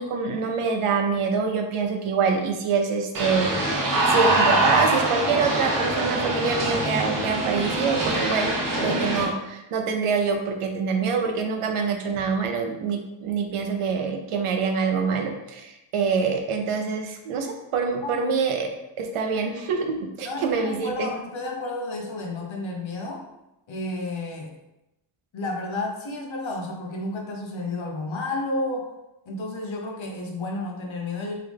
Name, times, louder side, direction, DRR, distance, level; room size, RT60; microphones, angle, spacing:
voice 1, 0.0-3.7 4.0-8.5 8.8-18.7 19.0-21.1, right 5 dB, 85° right, 4 dB, 0.7 m, -25 dB
sound 1, 3.1-9.2, right 2 dB, 40° right, 0.9 m, -24 dB
voice 2, 20.2-23.3 23.7-24.6 25.3-28.9 29.3-31.4, left 2 dB, 65° left, 1 dB, 0.9 m, -31 dB
3.7 x 3.3 x 3.4 m, 0.92 s
wide cardioid pair, 165°, 50 cm